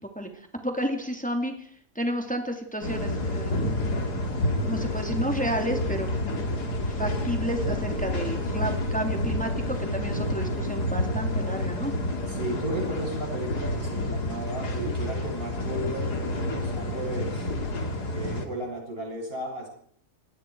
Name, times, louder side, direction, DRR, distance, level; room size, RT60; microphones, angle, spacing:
voice 1, 0.6-1.5 1.9-3.6 4.6-6.1 6.8-11.9, equal, 5° left, 4 dB, 2.8 m, -31 dB
sound 1, 2.8-18.4, left 1 dB, 85° left, 3.2 m, -29 dB
voice 2, 12.3-17.5 18.1-19.7, right 1 dB, 35° right, -1 dB, 8.2 m, -34 dB
27.5 x 20.0 x 4.8 m, 0.62 s
omnidirectional pair, 1.7 m